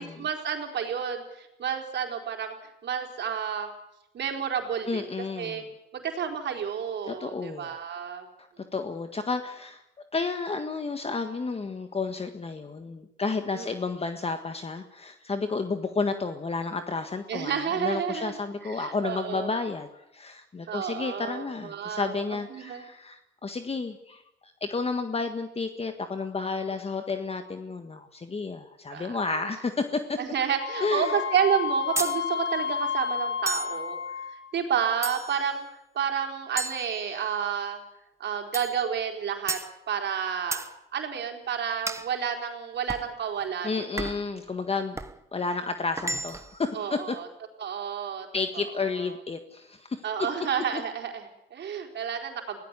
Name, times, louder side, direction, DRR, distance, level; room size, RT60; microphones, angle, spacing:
voice 1, 0.0-3.7 4.1-5.1 5.4-5.6 5.9-8.3 13.5-13.7 17.3-19.5 20.7-22.8 28.9-29.4 30.2-34.0 34.5-35.7 35.9-37.8 38.2-39.6 39.9-40.7 40.9-44.1 46.7-47.3 47.6-48.3 48.5-48.9 50.0-52.6, right 7 dB, 60° right, 3 dB, 4.3 m, -30 dB
voice 2, 4.9-5.6 7.1-7.7 8.6-9.8 10.1-24.2 24.6-30.2 30.8-31.2 43.6-45.0 45.3-47.2 48.3-50.0 50.4-50.5 50.7-50.8, left 4 dB, 30° left, 7 dB, 1.6 m, -31 dB
Wind instrument woodwind instrument, 30.6-34.5, left 7 dB, 80° left, 6.4 m, -31 dB
sound 1, 32.0-32.2 33.5-33.8 35.0-35.5 36.6-37.5 38.5-38.8 39.5-39.7 40.5-40.7 41.9-42.1 42.9-43.1 44.0-44.3 45.0-45.2 46.0-46.6, right 2 dB, 15° right, 1.1 m, -33 dB
22.5 x 17.5 x 8.3 m, 0.85 s
cardioid pair, 90°, 20 cm